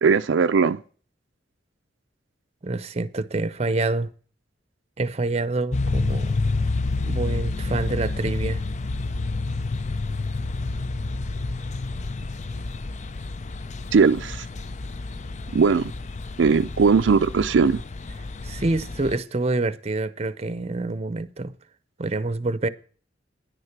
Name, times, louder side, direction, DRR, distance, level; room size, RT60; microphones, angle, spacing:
voice 1, 0.0-0.8 13.9-14.5 15.5-15.9 16.4-17.8, right 5 dB, 85° right, 0.4 m, -19 dB
voice 2, 2.6-4.1 5.0-6.3 7.0-8.6 18.4-21.5 22.0-22.7, right 2 dB, 35° right, 0.6 m, -26 dB
sound 1, 5.7-19.2, left 3 dB, 40° left, 0.5 m, -29 dB
10.5 x 9.7 x 5.9 m
head